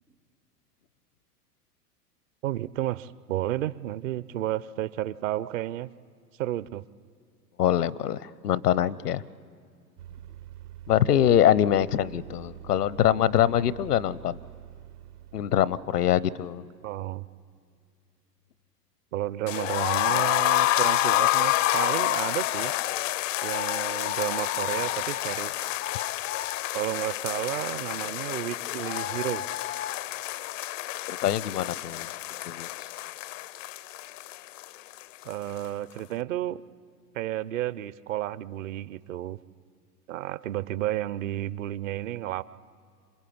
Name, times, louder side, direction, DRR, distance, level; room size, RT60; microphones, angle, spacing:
voice 1, 2.4-5.9 6.4-6.8 16.8-17.3 19.1-22.7 23.4-25.6 26.7-29.4 35.2-36.6 37.1-39.4 40.1-42.4, right 14 dB, 55° right, 18 dB, 0.7 m, -32 dB
voice 2, 7.6-9.2 10.9-14.4 15.3-16.6 31.1-32.1 32.5-32.7, left 10 dB, 75° left, 20 dB, 0.9 m, -24 dB
sound 1, 10.0-16.5, right 11 dB, 75° right, 1.3 m, -46 dB
sound 2, 19.5-35.3 35.6-35.7 36.0-36.1, left 15 dB, 55° left, 0.6 m, -28 dB
27.0 x 23.0 x 8.7 m, 2.3 s
figure-of-eight pair, 95°, 48 cm